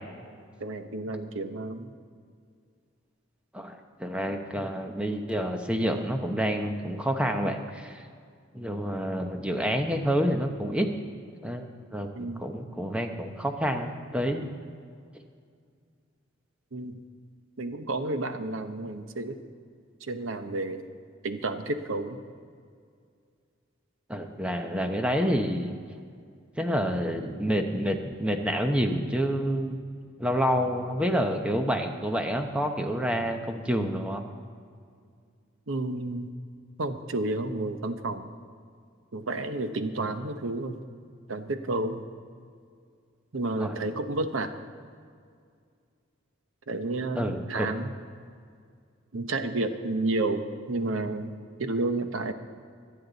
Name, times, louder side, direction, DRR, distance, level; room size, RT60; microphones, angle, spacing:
voice 1, 0.6-1.9 12.1-12.5 16.7-17.0 17.6-19.4 20.0-20.9 21.2-22.2 35.7-36.3 36.8-38.3 39.1-40.8 41.3-42.0 43.3-44.6 46.7-47.9 49.1-52.3, right 2 dB, 80° right, 8 dB, 0.9 m, -31 dB
voice 2, 3.5-8.0 8.5-10.9 11.4-11.7 11.9-14.5 24.1-25.7 26.6-29.8 30.2-34.2 43.6-43.7 47.2-47.7, equal, 5° right, 4 dB, 0.8 m, -28 dB
24.5 x 8.6 x 4.0 m, 2.2 s
head